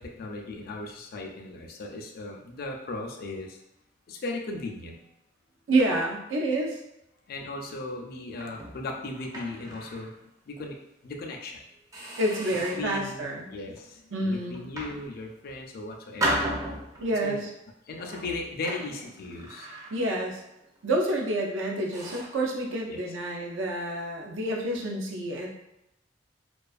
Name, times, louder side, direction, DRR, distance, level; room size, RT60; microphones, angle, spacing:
voice 1, 0.0-3.6 4.1-5.0 7.3-10.1 10.5-10.8 11.0-11.6 12.5-16.5 17.2-17.4 17.9-19.7 22.9-23.0, left 2 dB, 50° left, 1 dB, 0.4 m, -37 dB
voice 2, 5.7-6.8 12.2-13.5 14.1-14.6 17.0-17.5 19.9-20.4 20.8-25.5, right 1 dB, 90° right, 0 dB, 0.5 m, -28 dB
sound 1, 8.3-10.1 10.6-10.7 11.3-11.5 11.9-13.0 13.5-13.9 14.5-15.6 16.2-17.2 18.0-20.3 20.6-20.9 21.4-21.5 21.9-22.4, right 1 dB, 20° right, 0.4 m, -35 dB
2.4 x 2.3 x 2.3 m, 0.86 s
head